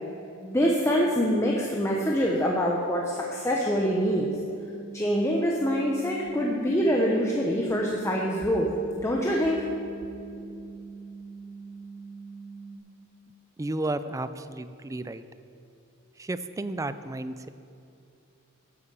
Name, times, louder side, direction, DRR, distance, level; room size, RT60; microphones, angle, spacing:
voice 1, 0.4-4.3 4.9-8.7 9.0-9.6, equal, 15° left, -2 dB, 0.9 m, -25 dB
sound 1, 4.0-12.8, right 4 dB, 80° left, 2.5 m, -43 dB
voice 2, 13.6-15.2 16.2-17.5, right 2 dB, 15° right, 12 dB, 0.4 m, -32 dB
10.5 x 8.6 x 6.9 m, 2.6 s
head